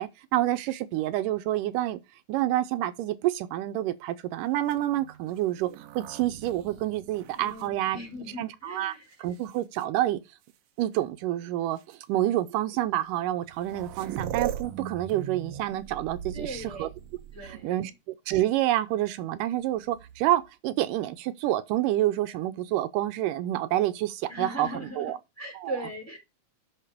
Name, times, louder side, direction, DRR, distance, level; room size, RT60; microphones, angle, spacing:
voice 1, 0.0-2.0 2.3-5.7 6.0-8.0 8.4-8.9 9.2-10.2 10.8-16.9 17.4-17.9 18.3-25.2 25.6-25.8, right 14 dB, 85° right, 2.3 m, -28 dB
sound 1, 4.6-8.4 9.1-9.8 10.9-11.0 11.8-11.9 13.1-13.2 13.4-17.8 19.8-20.5, right 10 dB, 70° right, 1.7 m, -40 dB
voice 2, 7.4-9.1 16.3-16.9 17.3-17.8 24.3-26.2, equal, 5° left, 3.8 m, -39 dB
9.0 x 6.0 x 4.9 m
omnidirectional pair, 3.8 m